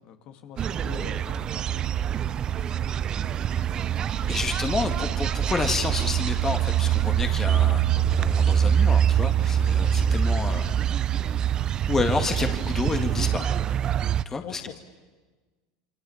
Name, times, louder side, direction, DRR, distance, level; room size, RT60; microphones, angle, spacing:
voice 1, 0.0-1.8 2.7-2.9 3.3-4.3 4.6-4.7 5.0-5.1 14.4-14.8, left 8 dB, 50° left, 6 dB, 2.3 m, -45 dB
sound 1, 0.6-14.2, right 9 dB, 35° right, 0.7 m, -24 dB
voice 2, 4.3-10.7 11.9-13.5 14.3-14.6, left 4 dB, 20° left, 6 dB, 2.0 m, -29 dB
28.0 x 26.5 x 7.2 m, 1.3 s
supercardioid pair, 110°, 2 cm